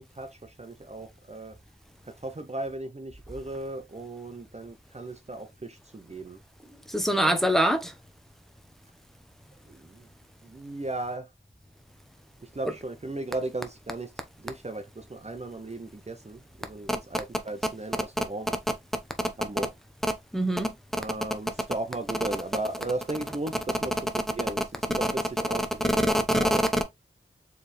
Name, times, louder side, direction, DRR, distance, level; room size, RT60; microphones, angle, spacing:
voice 1, 0.0-1.6 2.1-6.4 7.2-7.5 9.7-10.1 10.4-11.3 12.4-14.1 14.4-18.6 19.4-19.7 21.0-26.6, right 2 dB, 35° right, 0.7 m, -36 dB
voice 2, 6.9-7.9 20.3-20.7 26.3-26.6, equal, ahead, 0.9 m, -23 dB
4.7 x 3.5 x 3.2 m
wide cardioid pair, 65°, 21 cm